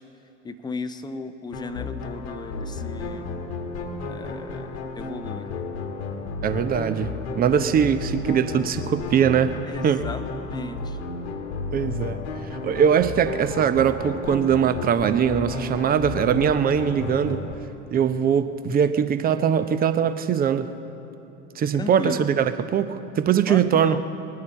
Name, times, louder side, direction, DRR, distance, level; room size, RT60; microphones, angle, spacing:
voice 1, 0.5-3.2 4.1-4.7 5.0-5.5 9.7-10.2 10.5-10.8 21.8-22.2 23.5-24.0, left 4 dB, 10° left, 9 dB, 0.7 m, -35 dB
sound 1, 1.5-17.6, left 3 dB, 70° left, 1.3 m, -33 dB
voice 2, 6.4-9.6 9.8-10.1 11.7-12.2 12.6-17.4 17.9-20.7 21.6-24.0, right 8 dB, 25° right, 11 dB, 0.7 m, -21 dB
20.0 x 9.6 x 6.7 m, 2.9 s
figure-of-eight pair, 75°, 35 cm